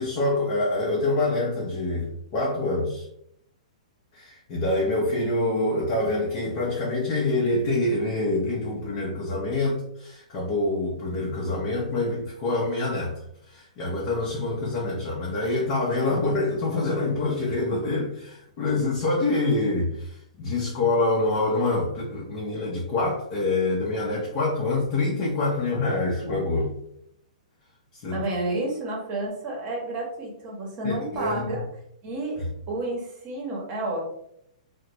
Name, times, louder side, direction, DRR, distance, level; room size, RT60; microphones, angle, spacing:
voice 1, 0.0-3.0 4.1-13.1 13.5-26.7 28.0-28.2 30.8-31.6, left 2 dB, 40° left, -5 dB, 0.8 m, -26 dB
voice 2, 28.1-31.6 32.0-32.4 32.7-34.0, right 2 dB, 35° right, -1 dB, 0.9 m, -30 dB
2.4 x 2.2 x 2.9 m, 0.73 s
hypercardioid pair, 135°, 4 cm